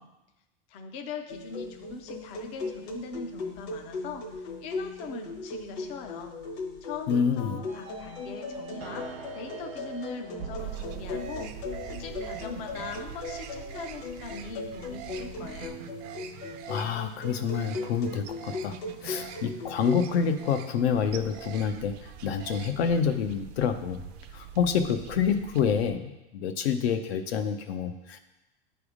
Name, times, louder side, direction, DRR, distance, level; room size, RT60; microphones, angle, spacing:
voice 1, 0.7-6.3 6.8-9.1 9.3-11.5 11.8-15.8, left 4 dB, 20° left, 5 dB, 0.4 m, -41 dB
sound 1, 1.3-20.4, left 3 dB, 55° left, 1.3 m, -38 dB
voice 2, 7.1-7.6 16.7-18.7 19.0-24.0 24.3-28.2, left 7 dB, 80° left, 8 dB, 0.8 m, -27 dB
sound 2, 7.7-14.3, right 6 dB, 85° right, 1.1 m, -44 dB
sound 3, 10.6-25.9, right 8 dB, 45° right, 0.4 m, -44 dB
9.7 x 3.5 x 5.0 m, 0.98 s
supercardioid pair, 160°, 31 cm